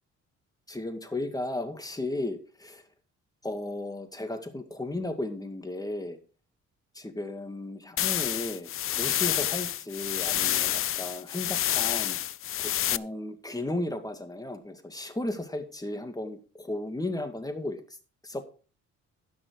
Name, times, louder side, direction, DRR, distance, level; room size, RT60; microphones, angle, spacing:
voice 1, 0.7-2.8 3.4-6.2 6.9-12.2 12.6-18.0 18.2-18.4, left 2 dB, 10° left, 7 dB, 2.2 m, -35 dB
sound 1, 8.0-13.0, left 12 dB, 45° left, 0.4 m, -28 dB
14.5 x 6.2 x 4.8 m, 0.37 s
cardioid pair, 90°, 30 cm